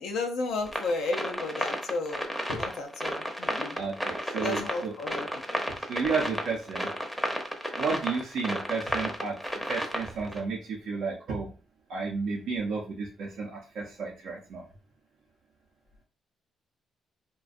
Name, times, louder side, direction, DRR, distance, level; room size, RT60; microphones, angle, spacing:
voice 1, 0.0-3.8 4.4-5.8, left 3 dB, 85° left, 2 dB, 0.4 m, -33 dB
sound 1, 0.7-10.4, equal, ahead, 0.6 m, -32 dB
voice 2, 3.7-4.9 5.9-6.9 7.8-9.3 9.7-11.5 11.9-14.6, right 4 dB, 75° right, -3 dB, 0.5 m, -32 dB
2.5 x 2.2 x 2.4 m, 0.36 s
supercardioid pair, 70°, 0 cm